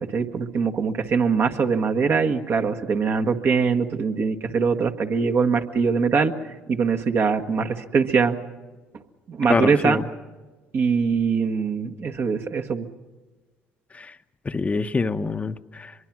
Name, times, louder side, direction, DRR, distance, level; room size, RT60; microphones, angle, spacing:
voice 1, 0.0-6.3 6.7-8.4 9.3-10.0 10.7-12.9, right 5 dB, 50° right, 5 dB, 1.6 m, -22 dB
voice 2, 9.5-10.0 13.9-14.1 14.4-15.9, left 4 dB, 25° left, 8 dB, 0.9 m, -25 dB
24.0 x 23.0 x 6.2 m, 1.3 s
hypercardioid pair, 60°, 5 cm